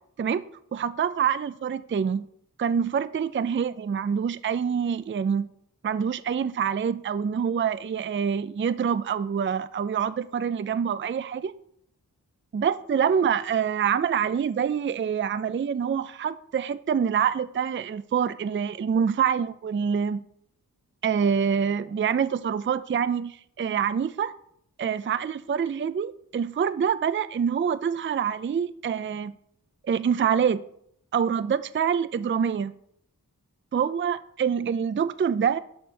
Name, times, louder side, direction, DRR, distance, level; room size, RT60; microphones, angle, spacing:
voice 1, 0.7-2.3 2.6-5.5 5.8-11.5 12.5-20.2 21.0-24.3 24.8-29.3 29.9-30.6 31.1-32.7 33.7-35.6, right 7 dB, 35° right, 15 dB, 0.4 m, -26 dB
7.9 x 4.4 x 6.3 m, 0.69 s
wide cardioid pair, 40°, 36 cm